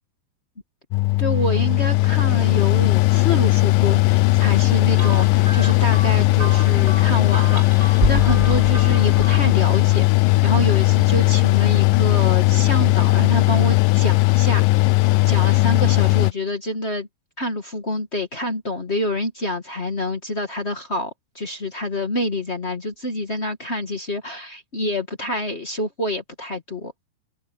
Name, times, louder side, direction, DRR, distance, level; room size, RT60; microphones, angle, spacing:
Mechanical fan, 0.9-16.3, left 22 dB, 85° left, 2.0 m, -17 dB
voice 1, 1.2-14.9 15.2-17.1 17.4-26.9, left 1 dB, 50° left, 0.7 m, -27 dB
sound 1, 5.0-9.7, right 1 dB, 15° right, 4.3 m, -29 dB
open air
omnidirectional pair, 4.7 m